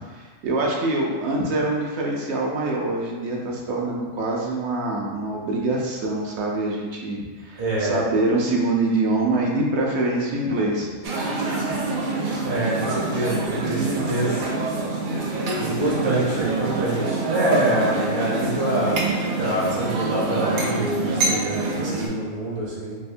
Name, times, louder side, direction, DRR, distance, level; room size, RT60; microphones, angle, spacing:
voice 1, 0.1-10.9, right 2 dB, 65° right, -1 dB, 0.8 m, -25 dB
voice 2, 7.6-8.0 12.4-14.4 15.6-19.1 19.4-23.0, right 1 dB, 30° right, -7 dB, 0.5 m, -25 dB
sound 1, 11.0-22.1, right 3 dB, 80° right, 0.4 m, -26 dB
3.4 x 2.6 x 2.5 m, 1.4 s
omnidirectional pair, 1.4 m